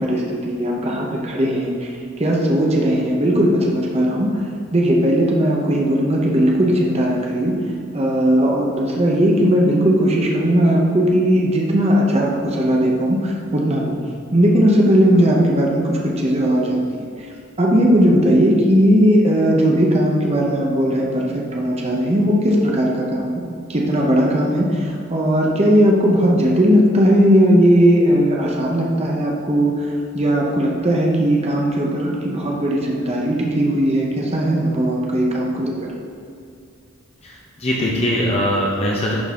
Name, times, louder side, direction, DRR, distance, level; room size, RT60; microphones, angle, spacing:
voice 1, 0.0-1.9 2.2-4.3 4.7-7.5 7.9-14.0 14.3-17.1 17.6-23.4 23.7-29.7 30.1-35.9, equal, 30° right, -2 dB, 0.8 m, -17 dB
voice 2, 37.2-39.2, equal, 30° left, -4 dB, 0.8 m, -21 dB
11.0 x 4.0 x 3.7 m, 2.4 s
head